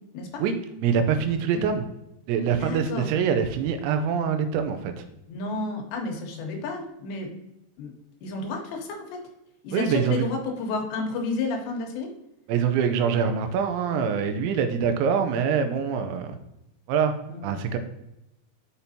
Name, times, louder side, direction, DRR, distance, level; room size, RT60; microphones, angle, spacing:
voice 1, 0.8-1.9 2.3-5.1 9.7-10.3 12.5-16.4 16.9-17.1 17.4-17.8, right 7 dB, 85° right, 7 dB, 3.1 m, -24 dB
voice 2, 2.6-3.1 5.3-7.3 7.8-7.9 8.2-9.2 9.6-12.1 17.3-17.5, left 3 dB, 75° left, 2 dB, 3.1 m, -31 dB
6.8 x 5.8 x 2.7 m, 0.87 s
omnidirectional pair, 5.2 m